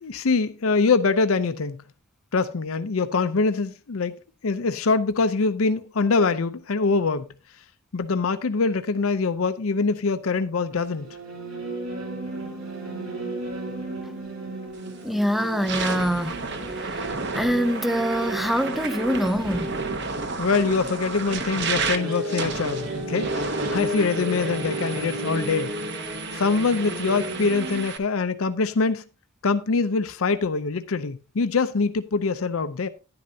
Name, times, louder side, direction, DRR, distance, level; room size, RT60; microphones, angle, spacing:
voice 1, 0.0-1.8 2.3-4.2 4.4-7.3 7.9-11.1 20.4-23.4 23.7-25.7 26.3-29.0 29.4-32.9, left 4 dB, 75° left, 0.6 m, -24 dB
sound 1, 10.7-27.8, right 1 dB, 85° right, 3.0 m, -33 dB
sound 2, 14.8-15.0 15.5-28.0, right 4 dB, 55° right, 1.1 m, -32 dB
voice 2, 15.0-16.4 16.8-19.8, equal, ahead, 0.4 m, -25 dB
11.0 x 10.5 x 2.8 m
head